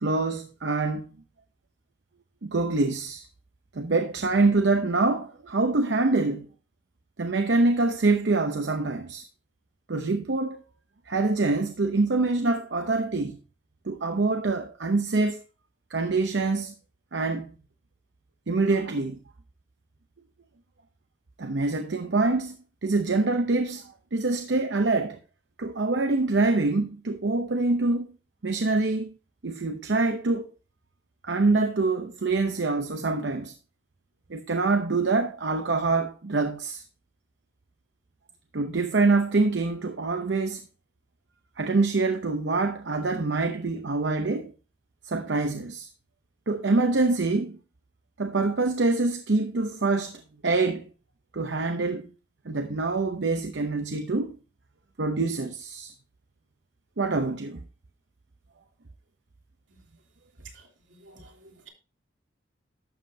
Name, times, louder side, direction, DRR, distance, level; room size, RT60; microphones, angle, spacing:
voice 1, 0.0-1.1 2.4-3.3 3.7-6.5 7.2-9.3 9.9-10.6 11.1-13.4 13.8-15.4 15.9-16.7 17.1-17.5 18.5-19.2 21.4-22.6 22.8-25.2 25.6-28.1 28.4-29.1 29.4-30.5 31.2-33.5 34.3-36.8 38.5-40.7 41.6-44.5 45.1-45.9 46.5-47.6 48.2-50.9 51.3-52.1 52.4-54.4 55.0-55.9 57.0-57.6, right 3 dB, 65° right, 0.7 m, -25 dB
voice 2, 60.5-61.7, right 2 dB, 85° right, 2.9 m, -53 dB
12.0 x 7.4 x 2.7 m
head